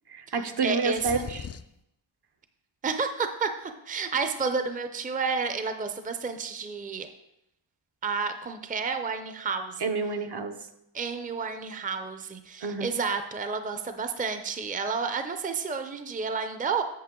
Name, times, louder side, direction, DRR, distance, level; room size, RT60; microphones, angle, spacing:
voice 1, 0.1-1.5 9.8-10.5 12.6-12.9, right 4 dB, 55° right, 7 dB, 0.8 m, -29 dB
voice 2, 0.6-1.2 2.8-7.1 8.0-9.8 10.9-16.8, right 5 dB, 15° right, 8 dB, 0.6 m, -31 dB
sound 1, 0.9-1.8, left 8 dB, 35° left, 0.4 m, -39 dB
8.6 x 6.5 x 3.7 m, 0.83 s
wide cardioid pair, 80°, 48 cm